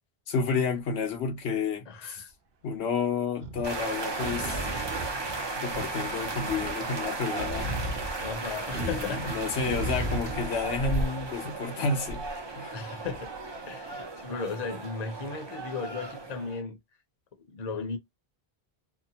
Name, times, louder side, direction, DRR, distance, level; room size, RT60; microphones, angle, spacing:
voice 1, 0.3-2.2 2.6-4.7 5.6-7.7 8.7-12.3 12.6-12.8, left 5 dB, 80° left, 1.0 m, -30 dB
sound 1, 0.7-1.1 3.4-3.8 4.2-6.0 6.4-9.2 9.6-11.3 12.1-12.3 13.0-13.1, right 1 dB, 60° right, 0.8 m, -35 dB
voice 2, 1.9-2.3 8.2-9.3 12.7-13.3 13.7-16.8 17.4-18.0, left 4 dB, 45° left, 0.7 m, -36 dB
sound 2, 3.6-16.6, right 3 dB, 30° right, 0.6 m, -35 dB
2.8 x 2.1 x 2.7 m
omnidirectional pair, 1.1 m